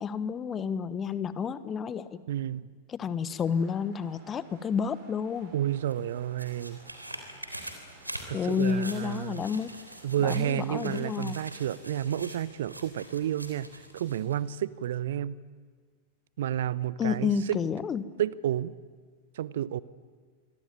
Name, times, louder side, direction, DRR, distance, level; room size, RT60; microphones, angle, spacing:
voice 1, 0.0-2.2 2.9-5.5 8.3-9.7 10.2-11.4 17.0-18.1, left 6 dB, 25° left, 15 dB, 1.3 m, -30 dB
voice 2, 2.3-2.7 5.5-6.8 8.3-9.4 10.0-15.4 16.4-17.6 18.2-18.7 19.3-19.8, right 11 dB, 60° right, 20 dB, 0.8 m, -31 dB
sound 1, 3.3-12.7, right 4 dB, 40° right, 7.5 m, -57 dB
sound 2, 5.7-14.4 14.8-14.9, right 1 dB, 85° right, 3.7 m, -44 dB
26.5 x 24.5 x 9.1 m, 1.5 s
figure-of-eight pair, 90°, 0 cm